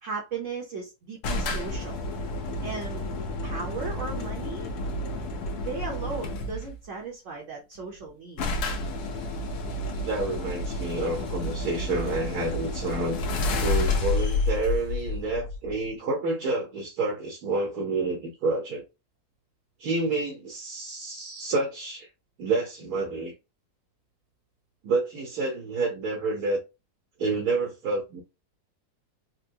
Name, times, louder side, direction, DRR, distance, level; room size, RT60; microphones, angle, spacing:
voice 1, 0.0-2.0 2.6-3.1 3.4-4.7 5.6-8.4, right 4 dB, 55° right, 1.0 m, -36 dB
sound 1, 1.2-6.8 7.8-7.9 8.0-8.1 8.4-15.9, left 2 dB, 75° left, 1.3 m, -30 dB
voice 2, 10.0-13.2 13.6-18.8 19.8-22.1 22.4-23.3 24.8-26.6 27.2-28.2, right 3 dB, 70° right, 1.4 m, -29 dB
4.3 x 2.1 x 2.7 m
omnidirectional pair, 1.7 m